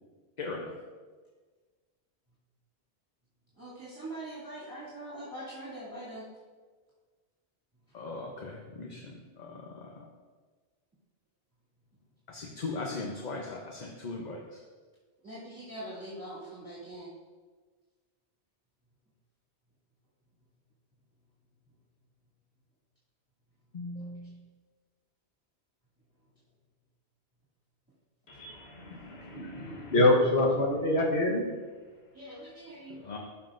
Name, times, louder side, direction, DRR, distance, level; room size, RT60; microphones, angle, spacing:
voice 1, 0.4-0.7 7.9-9.9 12.3-14.4 23.7-24.3 33.0-33.2, left 3 dB, 45° left, 0 dB, 0.8 m, -39 dB
voice 2, 3.6-6.3 15.2-17.1 32.1-33.0, right 1 dB, 10° right, -11 dB, 2.4 m, -42 dB
voice 3, 28.3-31.5, left 2 dB, 70° left, -1 dB, 1.4 m, -26 dB
12.5 x 5.8 x 2.6 m, 1.4 s
omnidirectional pair, 1.1 m